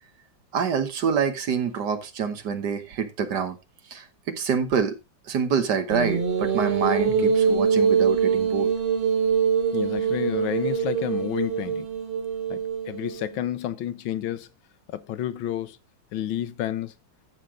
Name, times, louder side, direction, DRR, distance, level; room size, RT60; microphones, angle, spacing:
voice 1, 0.5-3.6 3.9-5.0 5.3-8.7, right 6 dB, 60° right, 1.7 m, -26 dB
sound 1, 5.9-13.3, right 6 dB, 35° right, 1.0 m, -24 dB
voice 2, 9.7-11.9 12.5-14.5 14.9-15.8 16.1-16.9, left 11 dB, 85° left, 1.5 m, -30 dB
14.0 x 5.4 x 3.6 m
omnidirectional pair, 2.1 m